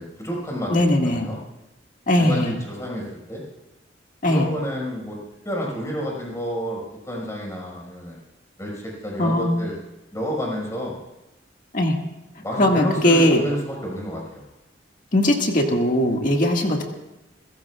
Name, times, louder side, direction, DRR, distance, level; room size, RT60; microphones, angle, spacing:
voice 1, 0.0-0.7 1.0-1.4 2.1-3.4 4.3-5.2 5.4-8.2 8.6-9.7 10.1-10.9 12.4-14.5, equal, 15° left, -2 dB, 5.4 m, -30 dB
voice 2, 0.7-1.3 2.1-2.5 4.2-4.5 9.2-9.5 11.7-12.0 12.6-13.4 15.1-16.8, left 1 dB, 45° left, 1 dB, 1.9 m, -19 dB
28.5 x 16.0 x 2.4 m, 0.99 s
head